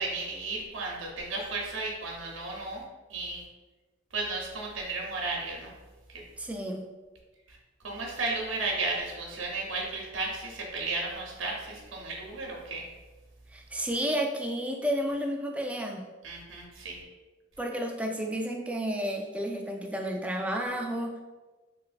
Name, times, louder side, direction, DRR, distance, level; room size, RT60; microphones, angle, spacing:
voice 1, 0.0-2.8 3.1-3.4 4.1-5.7 7.8-12.8 16.2-17.0, right 3 dB, 85° right, -1 dB, 0.7 m, -34 dB
voice 2, 6.4-6.8 13.5-16.0 17.6-21.1, equal, 5° right, 2 dB, 0.3 m, -31 dB
3.1 x 3.0 x 2.4 m, 1.2 s
head